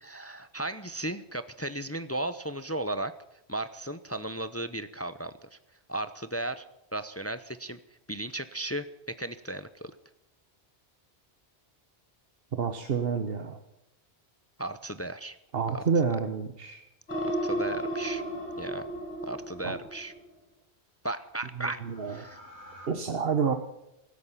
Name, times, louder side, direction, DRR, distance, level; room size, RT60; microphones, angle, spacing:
voice 1, 0.0-3.1 3.5-5.6 5.9-6.6 6.9-7.8 8.1-9.9 14.6-15.4 15.7-15.8 17.2-18.2 18.6-18.9 19.2-20.1 21.0-22.4, right 1 dB, 15° left, 12 dB, 0.5 m, -35 dB
voice 2, 12.5-13.6 15.5-16.8 19.6-19.7 21.6-22.1 22.9-23.6, right 6 dB, 60° right, 7 dB, 1.2 m, -28 dB
sound 1, 17.1-20.3 21.7-22.9, right 1 dB, 75° left, 4.0 m, -35 dB
16.5 x 13.5 x 5.7 m, 0.89 s
omnidirectional pair, 1.1 m